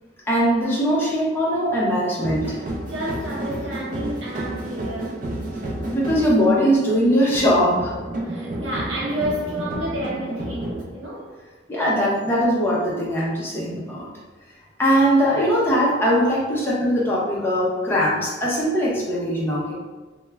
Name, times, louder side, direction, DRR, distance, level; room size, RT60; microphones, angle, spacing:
voice 1, 0.3-2.5 5.9-7.9 11.7-14.1 14.8-19.7, equal, 10° left, 0.5 m, -20 dB
sound 1, 2.2-10.8, right 1 dB, 45° right, 0.4 m, -31 dB
voice 2, 2.9-5.2 8.2-11.4, equal, 80° right, 0.7 m, -30 dB
2.3 x 2.1 x 3.2 m
head